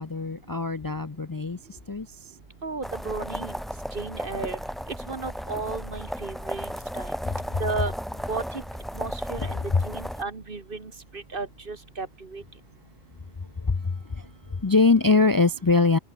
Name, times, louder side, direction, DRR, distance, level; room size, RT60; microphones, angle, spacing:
voice 1, 0.0-1.6 1.9-2.1 9.4-9.5 13.6-13.8 14.6-16.0, left 3 dB, 25° left, 0.5 m, -22 dB
voice 2, 2.6-3.6 3.9-4.6 5.1-7.1 7.6-7.9 8.3-8.6 8.9-12.4, right 3 dB, 55° right, 2.2 m, -34 dB
sound 1, 2.8-10.2, equal, ahead, 6.3 m, -35 dB
omnidirectional pair, 1.1 m